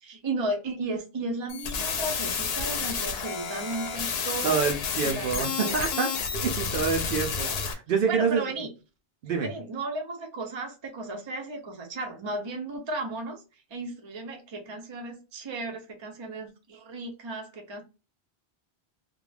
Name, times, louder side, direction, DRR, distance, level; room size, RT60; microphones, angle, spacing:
voice 1, 0.0-4.7 5.0-5.8 7.4-7.6 8.1-8.7 9.4-13.4 13.7-17.8, right 2 dB, 35° right, 0.5 m, -34 dB
sound 1, 1.5-7.7, left 6 dB, 75° left, 0.8 m, -30 dB
voice 2, 4.4-8.4 9.2-9.5, right 5 dB, 65° right, 0.7 m, -27 dB
2.4 x 2.2 x 3.1 m
omnidirectional pair, 1.1 m